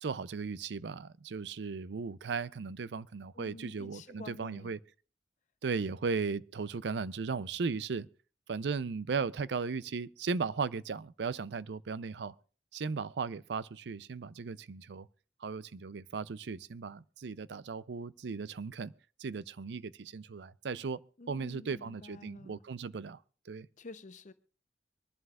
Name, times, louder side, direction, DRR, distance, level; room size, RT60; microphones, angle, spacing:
voice 1, 0.0-4.8 5.6-8.1 8.5-12.3 12.7-15.1 15.4-18.9 19.2-21.0 21.3-23.2 23.5-23.7, right 5 dB, 70° right, 0.5 m, -36 dB
voice 2, 3.3-4.7 21.2-22.6 23.8-24.3, left 3 dB, 45° left, 0.7 m, -50 dB
25.0 x 11.0 x 2.4 m
head